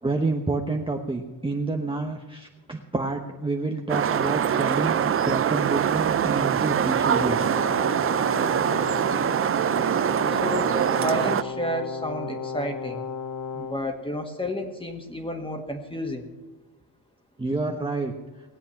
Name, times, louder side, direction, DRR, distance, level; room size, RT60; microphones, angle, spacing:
voice 1, 0.0-7.6 17.4-18.1, right 3 dB, 15° right, 1 dB, 1.0 m, -29 dB
sound 1, 3.9-11.4, right 8 dB, 35° right, 0.4 m, -23 dB
Brass instrument, 6.9-13.8, left 6 dB, 50° left, 1.0 m, -34 dB
sound 2, 7.7-8.8 9.3-11.8 12.1-12.2, right 7 dB, 55° right, 1.2 m, -42 dB
voice 2, 10.3-13.1 13.5-16.3, left 1 dB, 15° left, 4 dB, 1.9 m, -31 dB
19.5 x 8.2 x 5.9 m, 1.2 s
cardioid pair, 105°, 41 cm